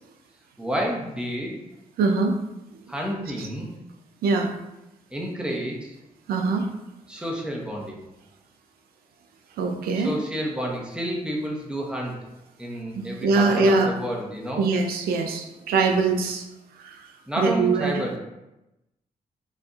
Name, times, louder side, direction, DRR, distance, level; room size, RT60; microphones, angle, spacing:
voice 1, 0.6-1.6 2.9-3.7 5.1-6.0 7.1-8.0 9.9-12.1 12.6-14.6 17.3-18.2, equal, 5° right, -2 dB, 0.9 m, -30 dB
voice 2, 2.0-2.3 3.4-3.5 4.2-4.5 6.3-6.7 9.6-10.1 12.9-13.9 14.6-16.4 16.8-17.0 17.4-18.0, right 4 dB, 85° right, 4 dB, 0.4 m, -22 dB
3.9 x 2.6 x 2.4 m, 0.93 s
supercardioid pair, 55°, 15 cm